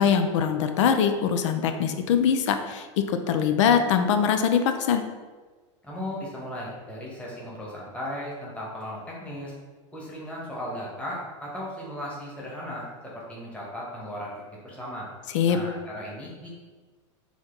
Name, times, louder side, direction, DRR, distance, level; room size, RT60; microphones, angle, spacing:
voice 1, 0.0-5.0 15.3-15.6, left 7 dB, 70° left, 8 dB, 0.5 m, -22 dB
voice 2, 5.8-9.5 9.9-14.3 14.6-15.1 15.5-16.5, equal, 5° left, -6 dB, 1.4 m, -36 dB
4.0 x 3.0 x 3.9 m, 1.3 s
hypercardioid pair, 115°, 16 cm